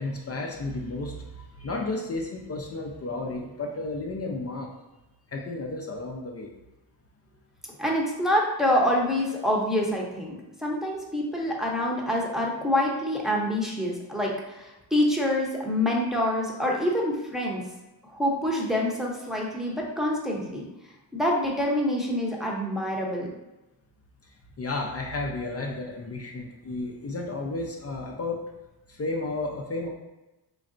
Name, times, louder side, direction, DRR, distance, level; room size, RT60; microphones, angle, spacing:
voice 1, 0.0-4.7 5.3-6.5 24.6-28.4 28.9-29.9, left 2 dB, 35° left, 0 dB, 0.5 m, -32 dB
voice 2, 7.8-17.6 18.0-20.6 21.1-23.3, left 1 dB, ahead, -2 dB, 0.8 m, -26 dB
4.0 x 3.1 x 2.6 m, 1.0 s
cardioid pair, 85°, 44 cm